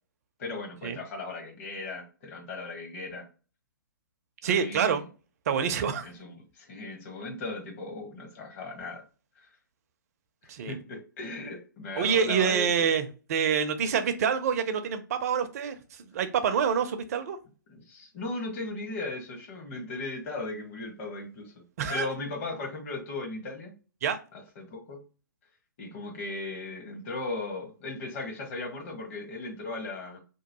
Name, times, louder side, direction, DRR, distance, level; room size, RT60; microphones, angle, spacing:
voice 1, 0.4-3.3 4.4-5.0 6.0-9.0 9.4-9.5 10.7-12.7 17.7-21.5 21.9-23.7 24.3-25.0 25.8-30.2, left 3 dB, 40° left, 1.2 m, -37 dB
voice 2, 4.4-5.1 5.5-6.1 10.5-10.8 12.0-17.4 21.8-22.1 24.0-24.2, right 7 dB, 45° right, 0.5 m, -27 dB
3.0 x 2.0 x 2.8 m
figure-of-eight pair, 125°, 11 cm